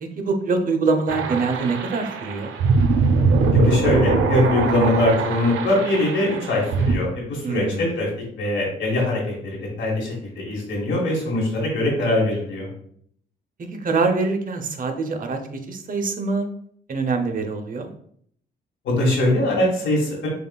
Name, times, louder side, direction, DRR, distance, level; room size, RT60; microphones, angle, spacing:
voice 1, 0.0-2.5 7.4-7.9 13.7-15.4 15.7-16.5 16.9-17.9, right 4 dB, 45° right, 5 dB, 0.7 m, -24 dB
sound 1, 1.1-7.0, right 4 dB, 80° right, 0.5 m, -22 dB
voice 2, 3.5-8.1 8.4-12.7 18.8-20.3, left 1 dB, 75° left, -4 dB, 1.3 m, -22 dB
6.4 x 2.4 x 2.3 m, 0.63 s
cardioid pair, 90°, 20 cm